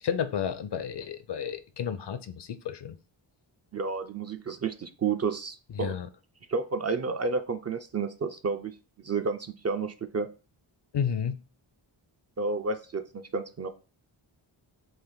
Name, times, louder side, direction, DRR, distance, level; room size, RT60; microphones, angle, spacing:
voice 1, 0.0-3.0 5.8-6.1 10.9-11.4, left 8 dB, 60° left, 0.6 m, -31 dB
voice 2, 3.7-5.9 6.5-10.3 12.4-13.0 13.3-13.7, right 4 dB, 35° right, 0.4 m, -31 dB
3.4 x 2.5 x 3.9 m
cardioid pair, 45°, 49 cm